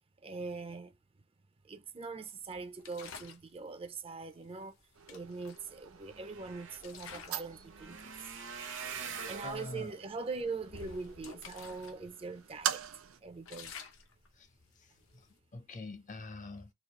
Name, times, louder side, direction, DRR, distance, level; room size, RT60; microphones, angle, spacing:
voice 1, 0.2-1.0 1.6-4.8 5.1-8.3 9.1-12.8 13.2-13.7, right 4 dB, 25° right, 0.5 m, -42 dB
sound 1, 2.8-3.5 4.6-4.7 5.1-6.3 6.8-7.5 7.9-8.2 8.8-8.9 9.3-9.5 10.0-12.0 12.3-12.4 12.9-15.4, left 6 dB, 75° left, 0.7 m, -51 dB
sound 2, 4.9-13.2, right 9 dB, 80° right, 0.6 m, -44 dB
sound 3, 5.4-5.5 5.7-12.1 12.6-13.1 13.5-13.7 14.0-14.1, right 6 dB, 65° right, 1.0 m, -46 dB
voice 2, 9.4-9.9 14.4-14.5 14.8-15.3 15.5-16.7, left 2 dB, 40° left, 0.7 m, -45 dB
3.9 x 2.4 x 3.0 m
head